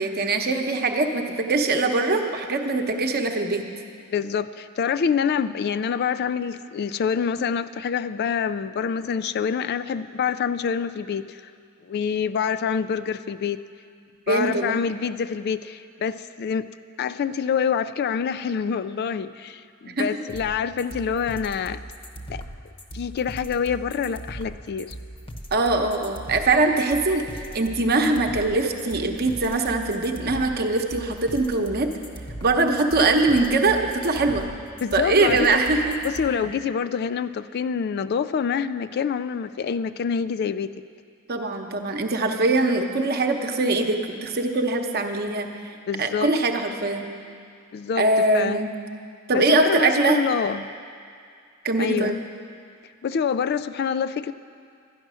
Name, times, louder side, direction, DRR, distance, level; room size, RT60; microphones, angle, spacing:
voice 1, 0.0-3.6 14.3-14.7 20.0-20.1 25.5-27.2 27.5-31.9 32.4-34.4 34.9-36.0 41.3-47.1 48.0-48.7 49.3-50.2 51.6-52.2, right 2 dB, 50° right, 4 dB, 0.9 m, -22 dB
voice 2, 4.1-11.4 11.8-13.6 14.3-16.7 17.0-21.8 22.3-22.4 22.9-25.0 34.8-35.5 36.0-40.8 45.9-46.3 47.7-48.0 48.3-48.6 49.3-50.7 51.8-52.2 53.0-54.3, left 6 dB, 50° left, 13 dB, 0.3 m, -26 dB
sound 1, 20.3-36.3, right 1 dB, 25° left, 0.9 m, -39 dB
12.5 x 10.0 x 6.2 m, 2.3 s
head